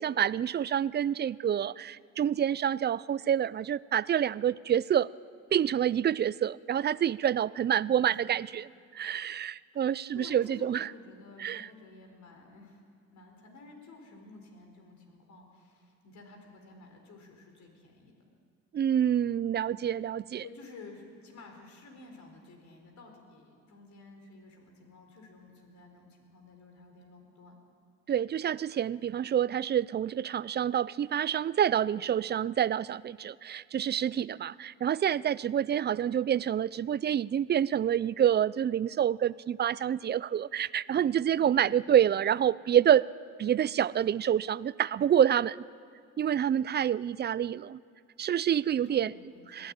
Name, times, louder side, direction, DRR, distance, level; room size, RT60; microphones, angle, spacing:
voice 1, 0.0-5.1 5.5-8.7 8.9-10.9 11.4-11.7 18.7-20.4 28.1-43.0 43.4-45.6 46.2-47.8 48.2-49.1 49.5-49.7, right 9 dB, 35° right, 20 dB, 0.4 m, -27 dB
voice 2, 7.7-8.4 9.7-12.8 13.1-18.2 20.4-27.6 41.3-42.1 48.8-49.7, left 3 dB, 70° left, 3 dB, 4.2 m, -52 dB
21.0 x 15.0 x 8.9 m, 2.2 s
cardioid pair, 90°, 30 cm